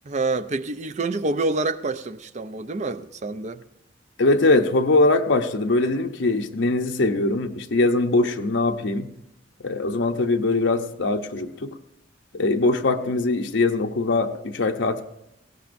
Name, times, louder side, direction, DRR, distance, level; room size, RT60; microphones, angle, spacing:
voice 1, 0.1-3.6, right 3 dB, 40° right, 0.5 m, -27 dB
voice 2, 4.2-9.1 9.6-11.8 12.3-15.0, left 2 dB, 80° left, 0.7 m, -22 dB
19.5 x 16.5 x 2.6 m
head